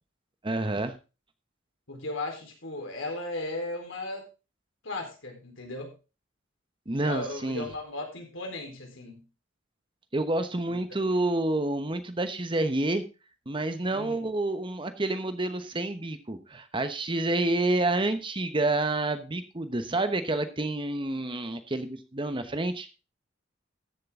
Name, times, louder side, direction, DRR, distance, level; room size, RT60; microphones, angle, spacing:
voice 1, 0.4-0.9 6.9-7.7 10.1-13.0 13.5-22.9, right 2 dB, 25° right, 9 dB, 1.1 m, -28 dB
voice 2, 1.9-4.3 4.8-5.9 7.0-9.2 10.7-10.8 13.9-14.2, left 2 dB, 75° left, 2 dB, 4.0 m, -36 dB
14.0 x 7.7 x 3.7 m, 0.31 s
head